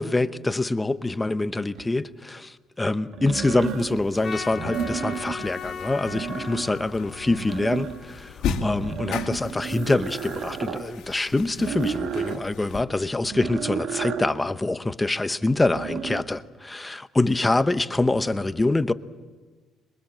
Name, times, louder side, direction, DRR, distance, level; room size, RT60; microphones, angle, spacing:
voice 1, 0.0-18.9, left 2 dB, 10° left, 0.8 m, -25 dB
sound 1, 1.8-1.9 3.1-4.1 4.5-5.5 5.9-6.9 7.2-8.2 8.7-10.9 11.6-12.4 13.2-14.3 15.5-16.2, right 8 dB, 65° right, 1.7 m, -32 dB
sound 2, 3.6-12.8, left 6 dB, 75° left, 2.2 m, -37 dB
Trumpet, 4.2-8.6, left 6 dB, 30° left, 1.8 m, -38 dB
26.5 x 22.5 x 7.6 m
cardioid pair, 145°, 0 cm